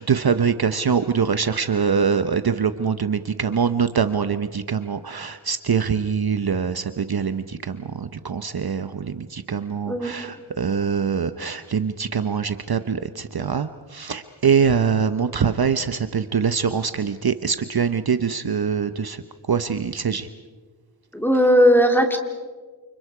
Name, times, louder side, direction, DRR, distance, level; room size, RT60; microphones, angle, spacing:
voice 1, 0.0-20.3, right 6 dB, 50° right, 10 dB, 0.9 m, -23 dB
voice 2, 21.1-22.2, equal, 5° left, 3 dB, 3.0 m, -17 dB
29.0 x 29.0 x 4.9 m, 1.4 s
wide cardioid pair, 95°, 46 cm